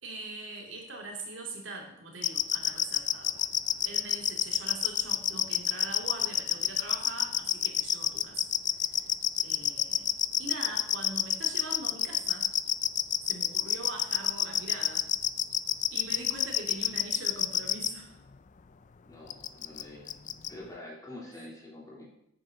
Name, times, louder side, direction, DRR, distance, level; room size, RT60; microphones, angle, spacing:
voice 1, 0.0-3.4 3.8-8.4 8.9-9.1 9.4-10.1 10.4-12.5 13.3-15.0 15.9-18.2, right 2 dB, 70° right, 0 dB, 2.8 m, -42 dB
sound 1, 2.2-17.9 19.3-19.8 20.1-20.5, left 11 dB, 40° left, 0.4 m, -27 dB
voice 2, 19.1-20.1 20.5-22.1, left 1 dB, 20° left, -4 dB, 3.4 m, -46 dB
11.5 x 9.5 x 3.9 m, 0.78 s
head